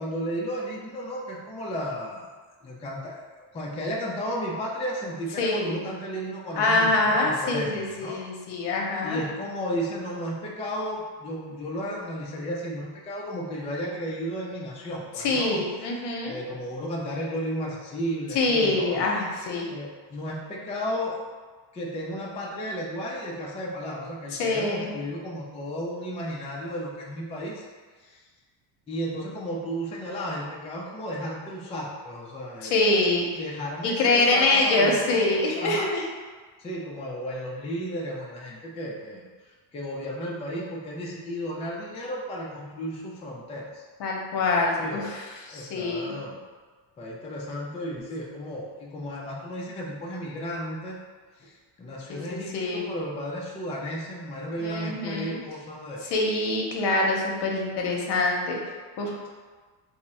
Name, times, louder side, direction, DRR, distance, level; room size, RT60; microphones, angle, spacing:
voice 1, 0.0-2.3 2.6-8.2 9.0-15.6 16.2-19.1 19.7-21.2 21.7-27.6 28.0-28.2 28.9-32.9 33.4-35.9 36.6-39.3 39.7-43.8 44.8-45.1 45.5-46.4 47.0-51.0 51.4-56.0, equal, 15° left, -4 dB, 0.4 m, -34 dB
voice 2, 5.4-5.8 6.5-9.2 15.2-16.3 18.3-19.7 24.3-24.9 32.6-33.3 33.8-36.0 44.0-45.2 45.5-46.1 52.1-52.8 54.6-55.4 56.1-58.6 59.0-59.1, left 2 dB, 65° left, -1 dB, 0.9 m, -25 dB
3.5 x 2.1 x 4.1 m, 1.5 s
cardioid pair, 125°, 45 cm